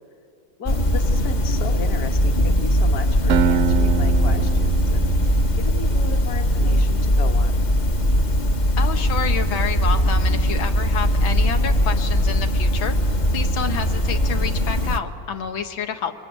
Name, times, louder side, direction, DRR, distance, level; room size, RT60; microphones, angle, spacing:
voice 1, 0.6-7.6, left 6 dB, 50° left, 6 dB, 1.9 m, -35 dB
sound 1, 0.7-15.0, equal, 35° left, 0.8 m, -20 dB
Acoustic guitar, 3.3-6.3, right 7 dB, 60° right, 0.9 m, -25 dB
voice 2, 8.8-12.9 13.3-16.1, left 7 dB, 85° left, 6 dB, 2.2 m, -29 dB
27.5 x 22.0 x 9.4 m, 2.4 s
omnidirectional pair, 2.1 m